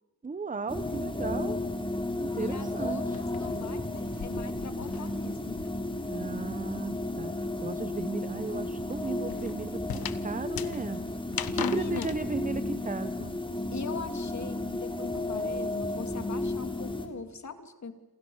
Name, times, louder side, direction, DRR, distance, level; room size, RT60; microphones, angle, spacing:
voice 1, 0.2-1.6 2.2-3.2 6.1-7.3 7.6-11.0 11.3-13.4, right 4 dB, 20° right, 12 dB, 0.9 m, -36 dB
sound 1, 0.7-17.1, left 2 dB, 15° left, 3.4 m, -33 dB
sound 2, 2.3-6.0 6.3-12.2, left 9 dB, 75° left, 1.4 m, -41 dB
voice 2, 2.4-5.6 11.6-12.1 13.7-17.9, left 5 dB, 50° left, 8 dB, 2.7 m, -40 dB
28.5 x 28.0 x 7.2 m, 1.1 s
wide cardioid pair, 130°, 36 cm